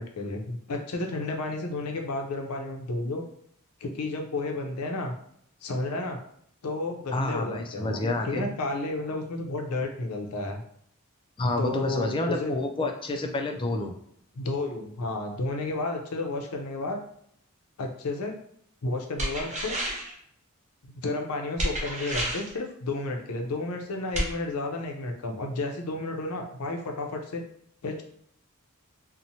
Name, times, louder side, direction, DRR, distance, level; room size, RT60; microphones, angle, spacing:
voice 1, 0.0-3.2 3.8-5.1 5.6-6.2 6.6-10.6 11.6-12.5 14.4-17.0 17.8-18.3 18.8-19.8 20.8-27.4 27.8-28.0, left 2 dB, 80° left, 3 dB, 0.5 m, -32 dB
voice 2, 7.1-8.5 11.4-13.9, left 2 dB, 25° left, 4 dB, 0.3 m, -28 dB
sound 1, 19.2-20.2 21.6-22.6 24.1-24.3, right 1 dB, 35° right, 0.6 m, -30 dB
2.9 x 2.1 x 2.7 m, 0.69 s
head